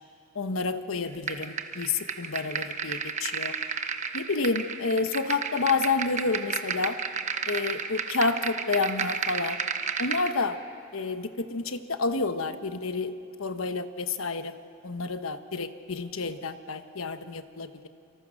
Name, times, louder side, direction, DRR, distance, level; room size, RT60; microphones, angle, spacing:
voice 1, 0.3-3.5 4.1-7.0 7.5-9.6 10.0-10.6 10.9-13.1 13.4-14.5 14.8-17.9, left 4 dB, 75° left, 10 dB, 1.1 m, -29 dB
sound 1, 1.3-10.3, right 6 dB, 35° right, 1.0 m, -32 dB
27.5 x 25.0 x 6.4 m, 2.5 s
head